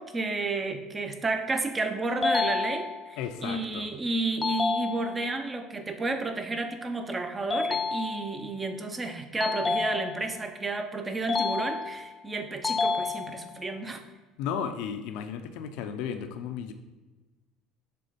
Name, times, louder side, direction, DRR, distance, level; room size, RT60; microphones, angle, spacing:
voice 1, 0.0-14.0, right 3 dB, 15° right, 7 dB, 0.7 m, -31 dB
sound 1, 2.2-3.2 4.4-5.4 7.5-8.5 9.4-10.5 11.3-12.2 12.6-13.6, left 4 dB, 20° left, 0.4 m, -30 dB
voice 2, 3.2-3.9 14.4-16.7, left 7 dB, 70° left, 7 dB, 0.6 m, -34 dB
6.8 x 3.8 x 5.1 m, 1.2 s
cardioid pair, 145°, 0 cm